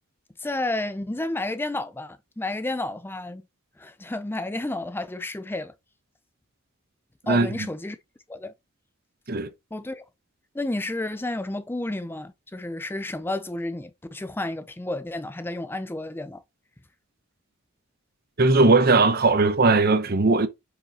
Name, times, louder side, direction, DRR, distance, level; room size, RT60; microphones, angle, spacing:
voice 1, 0.4-3.4 3.8-5.7 7.3-8.0 8.3-8.5 9.7-10.0 10.5-16.4, left 2 dB, 10° left, 0.5 m, -31 dB
voice 2, 18.4-20.5, right 3 dB, 45° right, 0.8 m, -19 dB
7.8 x 4.9 x 2.9 m
head